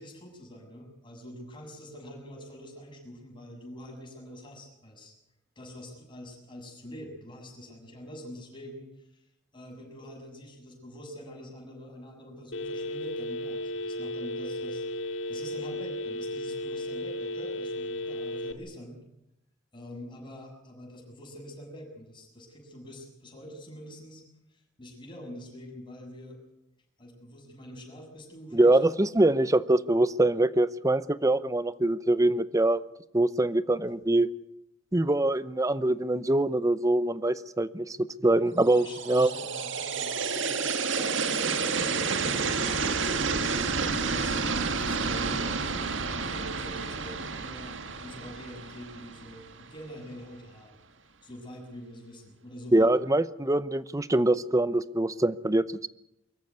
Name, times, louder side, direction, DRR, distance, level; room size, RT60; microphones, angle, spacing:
voice 1, 0.0-5.1 5.6-9.2 9.5-19.0 19.7-24.2 24.5-26.4 27.0-28.8 33.9-34.0 38.7-42.4 43.0-50.8 51.2-52.9, equal, 25° left, 1 dB, 7.1 m, -45 dB
Telephone, 12.5-18.5, left 1 dB, 85° left, 2.2 m, -34 dB
voice 2, 28.5-32.8 33.1-34.3 34.9-39.3 52.7-55.9, right 1 dB, 20° right, 16 dB, 0.7 m, -24 dB
sound 1, 38.7-49.7, right 4 dB, 85° right, 1.7 m, -30 dB
23.5 x 14.5 x 9.5 m, 0.84 s
head